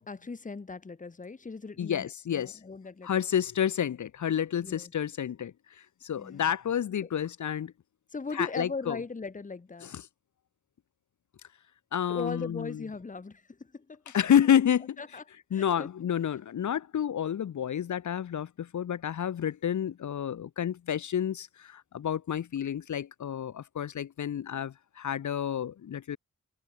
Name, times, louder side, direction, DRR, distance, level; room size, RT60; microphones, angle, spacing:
voice 1, 0.0-3.2 4.6-4.9 6.2-6.5 7.0-7.1 8.1-9.9 12.1-14.3 15.0-15.2 15.5-15.9, left 4 dB, 25° left, 1.2 m, -39 dB
voice 2, 1.8-2.6 3.0-5.5 6.0-7.7 8.3-9.0 9.8-10.0 11.9-12.8 14.1-15.0 15.5-26.2, left 9 dB, 65° left, 1.0 m, -29 dB
cardioid pair, 70°, 31 cm